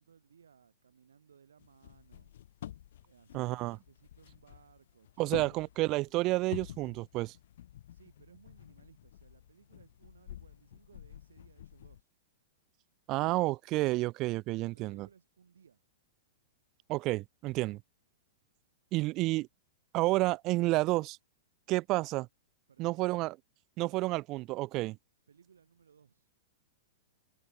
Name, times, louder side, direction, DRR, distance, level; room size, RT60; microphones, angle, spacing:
voice 1, 0.0-2.3 3.0-6.0 7.9-12.1 14.6-15.8 22.7-23.2 23.8-24.2 25.3-26.3, right 7 dB, 80° right, 8.0 m, -62 dB
sound 1, 1.6-12.0, left 12 dB, 65° left, 2.6 m, -49 dB
voice 2, 3.3-3.8 5.2-7.3 13.1-15.1 16.9-17.8 18.9-19.5 19.9-21.2 21.7-22.3 22.8-23.3 23.8-25.0, right 20 dB, 40° right, 1.3 m, -30 dB
hypercardioid pair, 105°, 0 cm